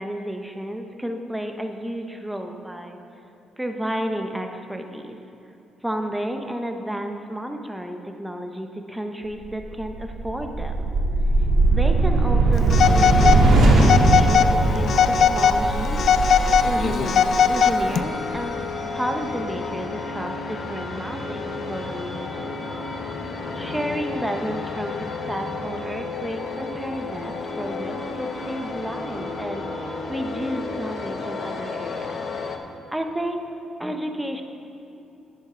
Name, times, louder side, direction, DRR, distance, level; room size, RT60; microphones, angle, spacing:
voice 1, 0.0-3.0 3.6-5.2 5.8-10.9 11.7-16.0 16.3-18.6 18.9-22.7 23.5-32.2 32.9-33.4 33.8-34.4, equal, 5° right, 4 dB, 1.0 m, -32 dB
sound 1, 9.6-18.0, right 2 dB, 65° right, 2.0 m, -20 dB
Telephone, 12.7-13.4 13.8-14.5 14.9-15.6 16.0-18.0, left 7 dB, 65° left, 0.4 m, -19 dB
sound 2, 12.8-32.6, left 3 dB, 50° left, 1.0 m, -32 dB
10.5 x 10.0 x 3.9 m, 2.9 s
cardioid pair, 90°, 0 cm